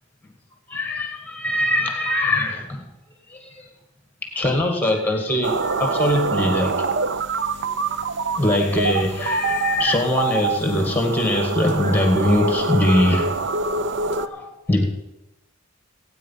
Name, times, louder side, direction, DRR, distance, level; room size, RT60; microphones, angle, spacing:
voice 1, 0.7-2.9 3.3-3.5 4.2-6.7 8.4-13.3 14.2-14.8, left 1 dB, 10° left, 4 dB, 2.1 m, -22 dB
sound 1, 5.4-14.3, right 4 dB, 55° right, 0.6 m, -25 dB
15.5 x 9.4 x 5.7 m, 0.92 s
head